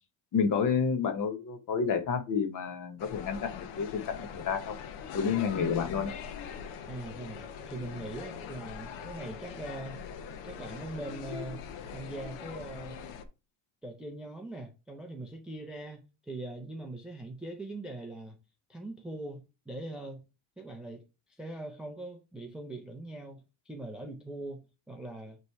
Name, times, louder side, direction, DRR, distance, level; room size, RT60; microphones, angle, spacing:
voice 1, 0.3-4.8 5.1-6.1, left 6 dB, 40° left, 0.9 m, -30 dB
sound 1, 3.0-13.3, left 7 dB, 80° left, 1.0 m, -42 dB
voice 2, 5.5-6.1 6.9-10.0 10.4-11.7 11.9-13.0 13.8-18.4 18.7-20.3 20.6-21.0 21.3-25.4, right 2 dB, ahead, 0.4 m, -41 dB
8.1 x 3.2 x 4.5 m
cardioid pair, 180°, 50 cm